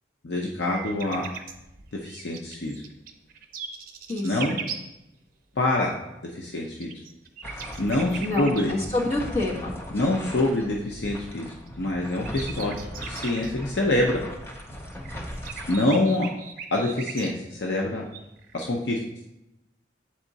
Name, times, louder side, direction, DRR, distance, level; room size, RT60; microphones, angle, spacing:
voice 1, 0.2-1.3 2.0-2.8 4.2-4.6 5.6-5.9 6.3-6.9 7.4-8.7 9.9-14.2 15.7-16.3 16.7-18.1 18.5-19.0, left 2 dB, 65° left, -1 dB, 0.7 m, -26 dB
sound 1, 0.7-4.9 6.5-8.7 11.7-11.8 12.0-13.5 14.9-17.6 18.1-18.7, right 6 dB, 45° right, 0.6 m, -38 dB
voice 2, 4.1-4.5 8.2-9.8 10.6-10.7, left 2 dB, 35° left, -5 dB, 1.5 m, -28 dB
sound 2, 7.4-15.8, equal, 10° left, 0.5 m, -39 dB
7.6 x 3.6 x 4.0 m, 0.90 s
head